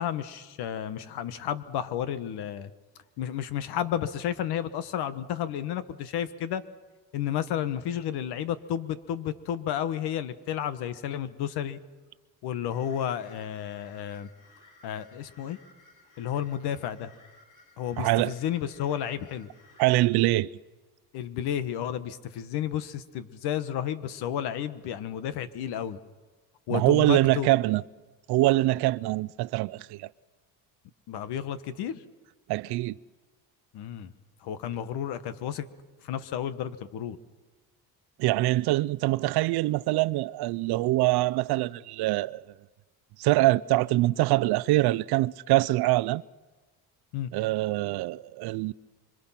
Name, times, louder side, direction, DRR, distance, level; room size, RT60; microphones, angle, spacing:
voice 1, 0.0-2.7 3.2-6.6 7.1-11.8 12.4-14.3 14.8-15.6 16.2-17.1 17.8-19.5 21.1-26.0 26.7-27.5 31.1-32.0 33.7-34.1 34.4-35.7 36.0-37.2 47.1-47.3, left 10 dB, 75° left, 1.4 m, -32 dB
sound 1, 12.7-20.0, left 2 dB, 55° left, 7.4 m, -57 dB
voice 2, 18.0-18.3 19.8-20.5 26.7-27.8 28.3-30.1 32.5-33.0 38.2-42.4 43.2-46.2 47.3-48.7, right 18 dB, 75° right, 0.7 m, -24 dB
25.5 x 25.0 x 5.9 m
cardioid pair, 105°, 39 cm